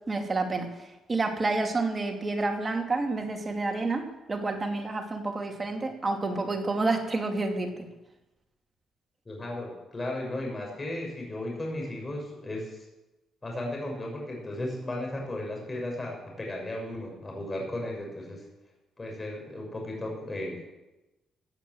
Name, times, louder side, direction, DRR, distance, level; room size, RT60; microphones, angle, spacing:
voice 1, 0.1-7.7, right 3 dB, 30° right, 3 dB, 2.6 m, -29 dB
voice 2, 9.2-12.9 13.4-18.4 19.0-20.6, left 1 dB, 25° left, 0 dB, 6.2 m, -35 dB
16.0 x 8.5 x 7.8 m, 1.0 s
cardioid pair, 90°, 0 cm